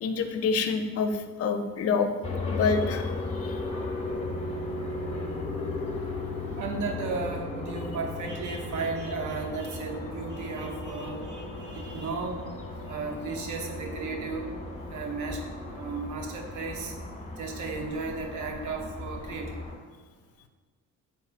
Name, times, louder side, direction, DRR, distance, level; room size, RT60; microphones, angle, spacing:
voice 1, 0.0-2.1 2.5-3.1 3.3-3.6, left 5 dB, 50° left, 7 dB, 0.4 m, -27 dB
sound 1, 2.2-19.8, left 2 dB, 20° left, 0.8 m, -36 dB
voice 2, 6.6-12.4 12.9-14.5 14.9-15.4 15.7-16.9 17.4-19.5, right 4 dB, 75° right, 3 dB, 0.6 m, -34 dB
4.1 x 3.6 x 2.4 m, 1.4 s
cardioid pair, 90°, 30 cm